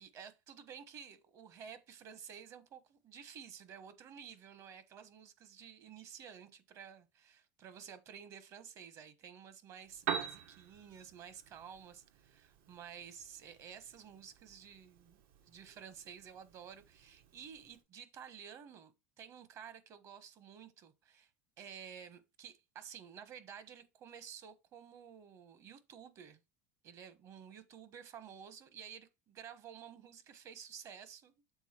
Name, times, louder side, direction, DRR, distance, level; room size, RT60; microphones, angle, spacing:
voice 1, 0.0-15.2 15.5-18.9 19.2-21.3 21.6-26.4 26.8-31.3, right 8 dB, 45° right, 1.2 m, -52 dB
Piano, 9.8-17.8, right 7 dB, 75° right, 1.3 m, -46 dB
7.1 x 3.8 x 4.4 m
supercardioid pair, 120°, 7 cm